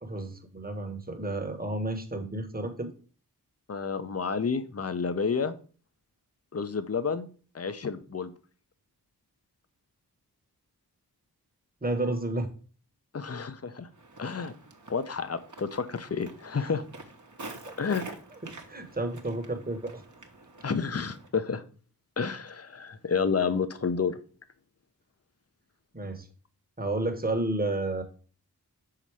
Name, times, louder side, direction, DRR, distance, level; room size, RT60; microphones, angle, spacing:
voice 1, 0.0-2.9 11.8-12.5 16.6-16.7 17.4-17.8 18.4-20.0 25.9-26.3 26.8-28.0, right 2 dB, 25° right, 6 dB, 1.2 m, -31 dB
voice 2, 3.7-5.5 6.5-7.3 7.5-8.3 13.1-13.9 14.2-14.5 14.9-16.8 17.8-18.0 20.6-21.6 22.2-24.2, left 5 dB, 40° left, 11 dB, 0.7 m, -30 dB
Walk footsteps, 13.9-21.3, right 2 dB, 50° right, 1.1 m, -47 dB
5.8 x 4.1 x 4.7 m, 0.40 s
wide cardioid pair, 50°, 38 cm